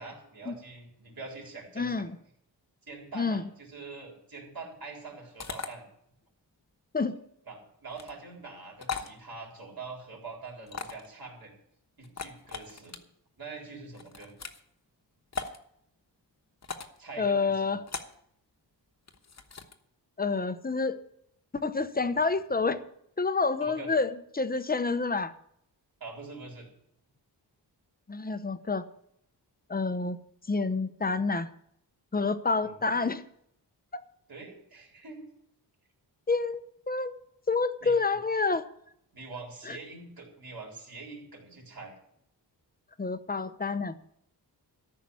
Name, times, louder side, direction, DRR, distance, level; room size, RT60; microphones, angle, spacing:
voice 1, 0.0-2.1 2.9-5.8 7.5-11.5 12.0-13.0 13.4-14.3 17.0-17.7 23.6-23.9 26.0-26.7 32.6-33.0 34.3-35.3 37.8-38.0 39.1-42.0, right 3 dB, 55° right, 0 dB, 4.2 m, -44 dB
voice 2, 1.8-2.1 3.1-3.4 6.9-7.2 17.2-17.9 20.2-21.0 21.5-22.8 23.2-25.3 28.1-28.8 29.7-30.2 30.5-31.5 32.1-33.2 33.9-34.0 36.3-36.6 36.9-37.1 37.5-38.6 39.7-39.8 43.0-43.9, left 4 dB, 20° left, 12 dB, 0.8 m, -28 dB
sound 1, 5.4-5.7 7.9-8.1 8.8-9.1 10.7-11.1 12.0-13.0 13.9-14.6 15.3-15.6 16.6-17.0 17.9-18.2 19.1-19.7, left 5 dB, 40° left, 1.2 m, -38 dB
14.0 x 5.9 x 9.8 m, 0.72 s
wide cardioid pair, 125°, 43 cm